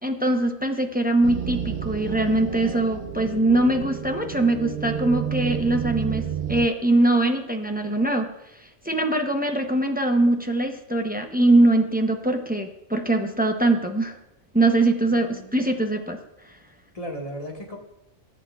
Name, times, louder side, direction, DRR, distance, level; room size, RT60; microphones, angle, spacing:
voice 1, 0.0-8.3 8.8-14.2 14.5-16.2, right 2 dB, 10° right, 3 dB, 0.6 m, -22 dB
sound 1, 1.2-6.7, right 8 dB, 55° right, 0.6 m, -30 dB
voice 2, 15.0-15.6 16.9-17.8, equal, 30° left, -1 dB, 1.7 m, -36 dB
18.0 x 8.5 x 2.4 m, 0.89 s
omnidirectional pair, 1.2 m